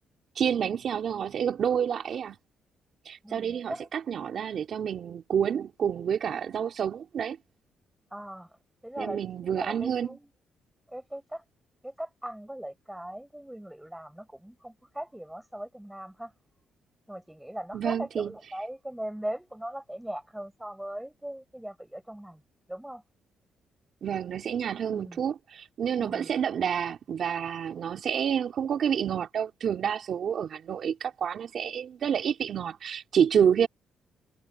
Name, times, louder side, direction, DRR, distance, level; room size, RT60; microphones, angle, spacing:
voice 1, 0.4-2.4 3.0-7.4 9.0-10.1 17.7-18.3 24.0-33.7, right 8 dB, 60° right, 3.1 m, -28 dB
voice 2, 3.2-3.9 8.1-8.6 8.8-9.2 9.5-10.3 10.9-11.4 11.8-16.3 17.1-22.4 22.7-23.0 24.9-25.2 26.0-26.3, right 1 dB, 5° right, 5.9 m, -39 dB
cardioid pair, 90°, 0 cm